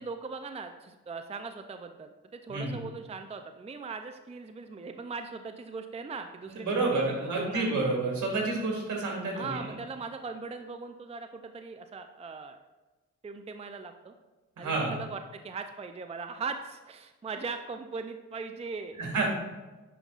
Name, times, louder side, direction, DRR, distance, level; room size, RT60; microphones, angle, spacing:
voice 1, 0.0-7.9 9.3-12.6 13.2-14.1 14.6-19.0, right 4 dB, 20° right, 7 dB, 0.5 m, -39 dB
voice 2, 6.5-9.6 14.6-14.9 19.0-19.3, right 3 dB, 75° right, -1 dB, 2.2 m, -29 dB
10.0 x 5.3 x 2.5 m, 1.2 s
cardioid pair, 65°, 30 cm